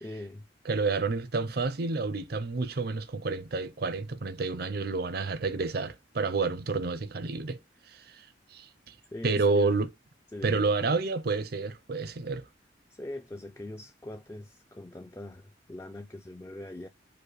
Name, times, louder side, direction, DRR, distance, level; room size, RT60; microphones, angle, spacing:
voice 1, 0.0-0.5 9.1-9.8 10.3-11.0 12.9-16.9, left 1 dB, 15° left, 0.4 m, -42 dB
voice 2, 0.7-7.6 7.9-8.2 8.5-8.9 9.2-9.9 10.4-12.4, right 3 dB, 55° right, 0.6 m, -29 dB
4.9 x 2.1 x 4.7 m
head